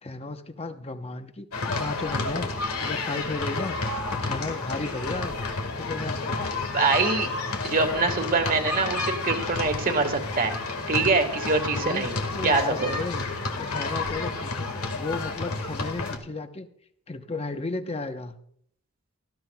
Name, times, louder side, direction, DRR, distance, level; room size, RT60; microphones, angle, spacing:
voice 1, 0.0-3.8 4.1-5.3 5.8-6.5 11.7-12.1 12.3-13.2 13.6-14.7 14.9-16.7 17.1-18.3, left 3 dB, 30° left, 8 dB, 0.8 m, -34 dB
sound 1, 1.5-16.2, left 3 dB, 80° left, 1.7 m, -30 dB
voice 2, 6.7-7.3 7.6-10.6 10.9-12.1 12.4-12.9, right 3 dB, 40° right, 5 dB, 1.5 m, -24 dB
18.5 x 12.0 x 2.2 m, 0.66 s
head